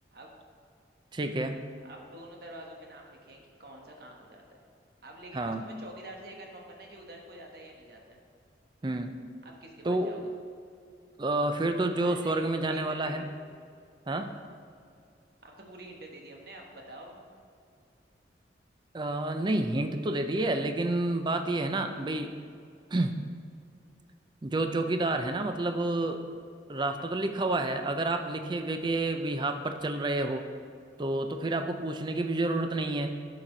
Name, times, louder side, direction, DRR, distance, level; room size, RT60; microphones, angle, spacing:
voice 1, 1.1-1.6 5.3-5.6 8.8-9.1 9.8-10.1 11.2-13.3 14.1-14.3 18.9-22.3 22.9-23.2 24.4-26.2 26.7-30.5 31.0-33.1, right 2 dB, 25° right, 7 dB, 0.4 m, -29 dB
voice 2, 1.8-4.6 5.0-8.2 9.4-10.2 12.0-13.3 15.4-17.2 26.9-27.1, right 1 dB, 55° right, 0 dB, 1.3 m, -47 dB
10.5 x 5.9 x 3.9 m, 2.4 s
head